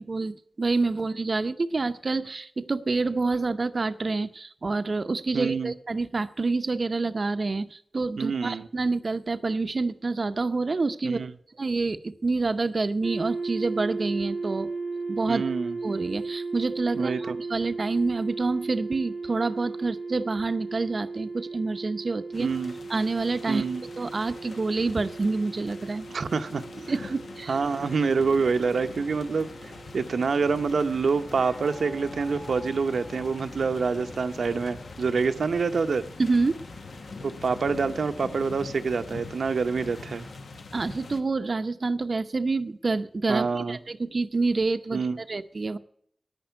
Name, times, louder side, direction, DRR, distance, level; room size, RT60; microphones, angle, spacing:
voice 1, 0.0-11.2 11.6-14.7 15.1-15.4 15.8-22.5 22.9-23.7 24.0-26.3 26.9-27.6 36.2-36.6 40.7-45.8, right 3 dB, 45° right, 0.6 m, -27 dB
voice 2, 5.3-5.7 8.2-8.7 11.0-11.3 15.3-15.8 17.0-17.4 22.4-22.7 23.5-23.8 26.1-26.6 27.5-29.5 29.9-36.0 37.2-40.3 43.3-43.8 44.9-45.2, right 5 dB, 90° right, 0.8 m, -26 dB
sound 1, 13.0-31.0, right 3 dB, 15° right, 0.8 m, -36 dB
sound 2, 22.3-41.2, left 3 dB, 90° left, 1.2 m, -44 dB
sound 3, 27.5-40.4, left 1 dB, 20° left, 1.1 m, -47 dB
10.5 x 9.7 x 7.9 m
wide cardioid pair, 120°, 0 cm